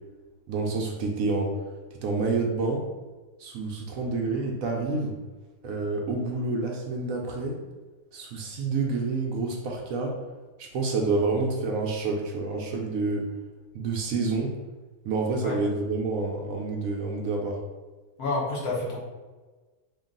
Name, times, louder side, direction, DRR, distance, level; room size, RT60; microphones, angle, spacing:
voice 1, 0.5-1.6 2.0-2.8 3.4-5.2 5.6-7.6 8.1-10.2 10.6-13.3 13.7-14.5 15.0-17.6, right 3 dB, 70° right, 0 dB, 0.8 m, -28 dB
voice 2, 18.2-19.0, left 2 dB, 60° left, -4 dB, 1.5 m, -28 dB
3.7 x 2.3 x 3.8 m, 1.3 s
omnidirectional pair, 1.8 m